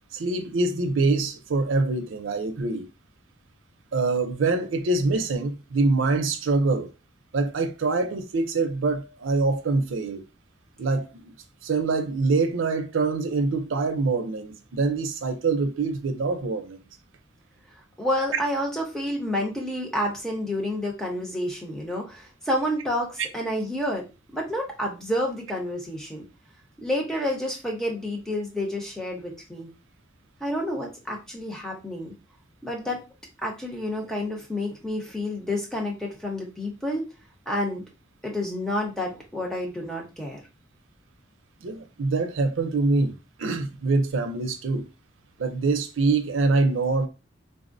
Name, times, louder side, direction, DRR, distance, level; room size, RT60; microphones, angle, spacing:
voice 1, 0.1-2.9 3.9-6.9 7.3-10.2 10.8-11.3 11.6-16.8 41.6-44.9 45.4-47.1, right 3 dB, 90° right, 0.5 m, -25 dB
voice 2, 18.0-24.0 24.3-26.2 26.8-29.7 30.4-32.1 32.6-33.0 33.4-37.0 37.5-37.8 38.2-40.4, left 1 dB, 5° left, 0.7 m, -29 dB
3.5 x 2.0 x 2.5 m
head